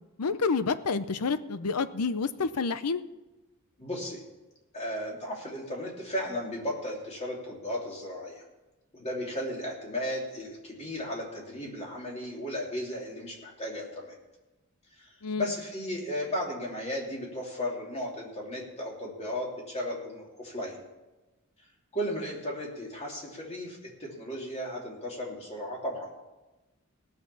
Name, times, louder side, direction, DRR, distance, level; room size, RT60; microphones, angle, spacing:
voice 1, 0.2-3.0 15.2-15.5, left 4 dB, 85° left, 13 dB, 0.7 m, -29 dB
voice 2, 3.8-4.2 4.7-8.4 8.9-14.1 15.0-20.8 21.9-26.1, left 1 dB, 30° left, -2 dB, 3.2 m, -35 dB
17.5 x 6.6 x 7.1 m, 1.1 s
head